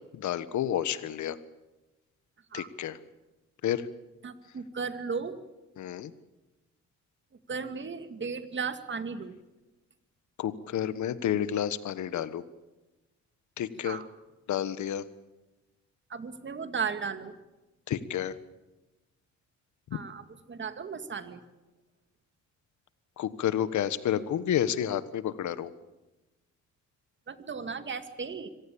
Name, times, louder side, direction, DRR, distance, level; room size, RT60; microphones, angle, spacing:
voice 1, 0.1-1.4 2.5-3.0 3.6-3.9 5.8-6.1 10.4-12.4 13.6-14.0 14.5-15.0 17.9-18.3 19.9-20.0 23.2-25.7, left 10 dB, 70° left, 15 dB, 1.4 m, -30 dB
voice 2, 4.2-5.4 7.5-9.3 13.8-14.1 16.1-17.3 19.9-21.4 27.3-28.5, right 5 dB, 40° right, 10 dB, 2.2 m, -35 dB
25.5 x 17.5 x 8.7 m, 1.1 s
cardioid pair, 90°, 30 cm